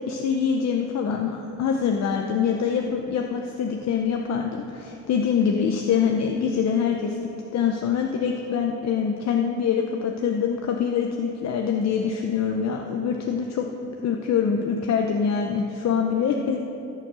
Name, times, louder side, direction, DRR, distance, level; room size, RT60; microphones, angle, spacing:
voice 1, 0.1-7.2 7.5-16.6, left 7 dB, 60° left, 2 dB, 0.8 m, -24 dB
12.5 x 6.7 x 6.2 m, 2.9 s
cardioid pair, 90°, 30 cm